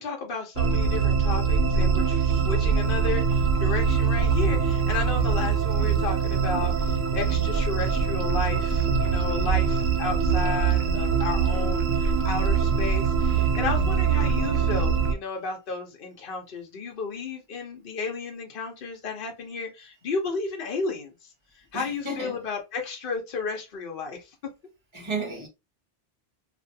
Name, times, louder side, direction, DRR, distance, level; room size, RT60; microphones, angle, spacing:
voice 1, 0.0-21.1 21.7-24.3, left 4 dB, 60° left, 0.9 m, -33 dB
sound 1, 0.6-15.1, right 5 dB, 75° right, 0.9 m, -23 dB
voice 2, 21.7-22.4 24.9-25.5, right 2 dB, 30° right, 1.1 m, -32 dB
2.5 x 2.4 x 2.6 m
omnidirectional pair, 1.0 m